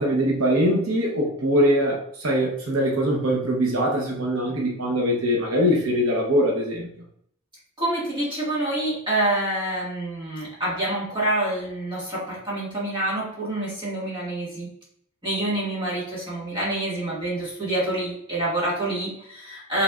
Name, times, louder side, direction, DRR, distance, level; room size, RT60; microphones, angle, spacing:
voice 1, 0.0-6.9, equal, 75° right, -1 dB, 0.9 m, -22 dB
voice 2, 7.8-14.7 15.2-19.8, right 1 dB, 25° right, -7 dB, 1.8 m, -27 dB
5.5 x 3.3 x 2.4 m, 0.69 s
head